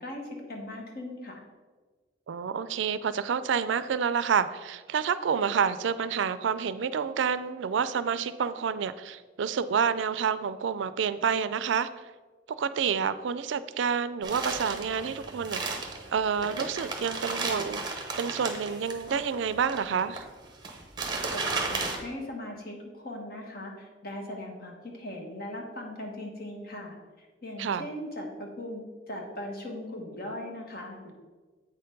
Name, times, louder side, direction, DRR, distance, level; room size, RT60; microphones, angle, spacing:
voice 1, 0.0-1.4 21.3-31.1, left 1 dB, 50° left, 1 dB, 1.4 m, -39 dB
voice 2, 2.3-11.9 12.5-20.3 27.6-27.9, right 6 dB, 70° right, 14 dB, 0.4 m, -29 dB
sound 1, 14.2-22.0, right 3 dB, 20° right, 0.9 m, -34 dB
8.2 x 4.3 x 5.2 m, 1.4 s
head